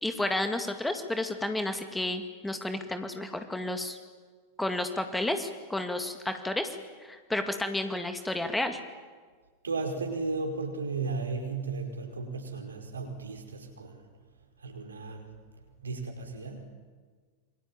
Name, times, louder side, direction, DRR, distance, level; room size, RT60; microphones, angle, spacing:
voice 1, 0.0-4.0 4.6-6.8 7.0-8.8, left 1 dB, 5° left, 7 dB, 2.2 m, -31 dB
voice 2, 9.6-14.0 14.6-15.3 15.8-16.6, right 3 dB, 75° right, 3 dB, 4.9 m, -35 dB
27.5 x 24.0 x 8.9 m, 1.5 s
figure-of-eight pair, 90°, 0 cm